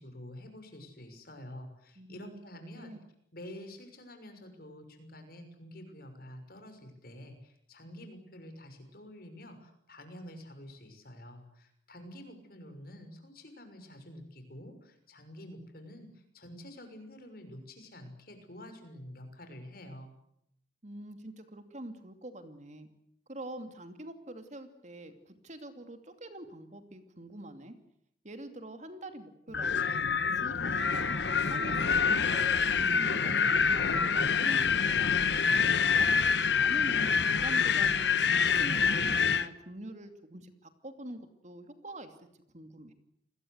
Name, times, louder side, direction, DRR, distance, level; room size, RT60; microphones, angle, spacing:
voice 1, 0.0-2.9 3.3-20.1, left 1 dB, 55° left, 7 dB, 6.2 m, -48 dB
voice 2, 2.0-2.4 2.8-3.0 20.8-22.9 23.3-27.7 28.2-33.5 33.7-35.7 36.0-42.3 42.5-42.9, right 1 dB, 40° right, 8 dB, 2.7 m, -45 dB
Wind, 29.5-39.5, left 6 dB, 75° left, 1.2 m, -26 dB
29.0 x 21.0 x 8.1 m, 0.72 s
head